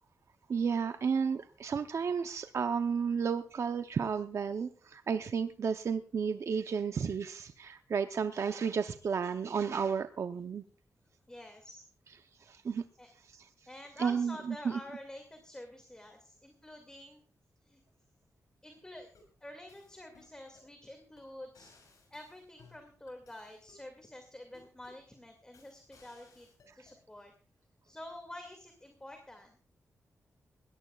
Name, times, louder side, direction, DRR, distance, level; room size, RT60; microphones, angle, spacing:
voice 1, 0.5-10.6 12.4-12.8 13.2-13.7 14.0-14.8 26.7-26.8, right 6 dB, 55° right, 8 dB, 0.7 m, -32 dB
voice 2, 11.3-11.8 12.4-12.5 13.0-13.1 13.7-17.2 17.6-17.8 18.6-19.1 19.4-21.7 22.1-26.5 26.8-27.3 27.8-29.6, left 1 dB, 15° left, 4 dB, 2.2 m, -48 dB
sound 1, 18.9-19.3 19.7-20.7 21.2-21.3 21.5-23.9 24.5-25.1 25.5-27.0, left 4 dB, 85° left, 6.4 m, -62 dB
21.5 x 17.5 x 2.4 m, 0.41 s
wide cardioid pair, 125°, 6 cm